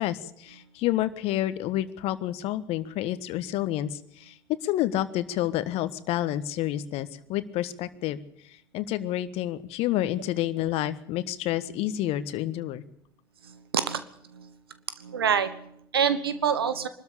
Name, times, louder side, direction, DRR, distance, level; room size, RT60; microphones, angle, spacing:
voice 1, 0.0-4.3 4.6-8.2 8.7-12.8, left 13 dB, 55° left, 14 dB, 1.4 m, -29 dB
voice 2, 13.4-14.1 14.3-14.5 15.0-16.9, right 7 dB, 85° right, 12 dB, 1.2 m, -27 dB
23.5 x 13.0 x 8.4 m, 0.72 s
figure-of-eight pair, 65°, 12 cm